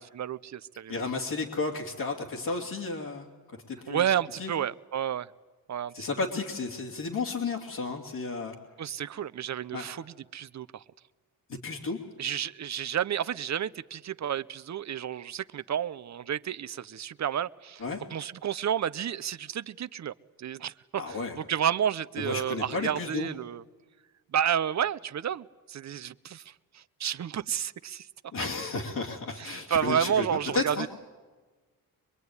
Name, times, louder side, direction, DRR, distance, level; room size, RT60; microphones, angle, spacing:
voice 1, 0.1-0.9 3.9-5.3 5.7-5.9 8.8-10.8 12.2-17.8 18.1-20.1 20.4-23.6 24.3-28.1 28.4-28.5 29.4-30.9, right 9 dB, 50° right, 16 dB, 0.7 m, -31 dB
voice 2, 0.9-3.3 3.7-4.0 4.4-4.5 5.9-8.5 9.7-9.9 11.6-12.0 17.8-18.0 21.0-21.4 22.2-23.3 28.3-30.3 30.5-30.9, left 3 dB, 60° left, -3 dB, 2.9 m, -32 dB
24.0 x 22.5 x 9.7 m, 1.3 s
cardioid pair, 95°, 37 cm